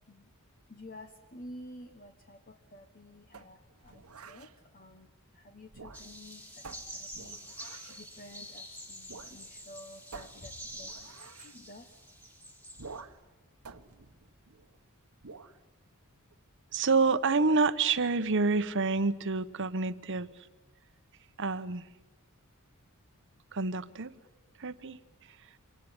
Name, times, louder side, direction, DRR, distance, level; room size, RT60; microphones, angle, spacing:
voice 1, 0.7-6.6 6.9-10.9 11.4-12.0, left 1 dB, 40° left, 6 dB, 1.3 m, -51 dB
sound 1, 3.3-4.5 5.6-6.3 6.6-8.1 9.1-9.4 9.6-9.7 10.1-11.6 12.8-13.3 13.6-14.8 15.2-15.6, right 4 dB, 75° right, 1.2 m, -49 dB
sound 2, 5.9-13.0, equal, 10° left, 3.2 m, -47 dB
voice 2, 16.7-20.3 21.4-21.9 23.5-24.1 24.6-25.0, right 4 dB, 55° right, 13 dB, 1.0 m, -28 dB
25.0 x 18.5 x 10.0 m, 1.1 s
head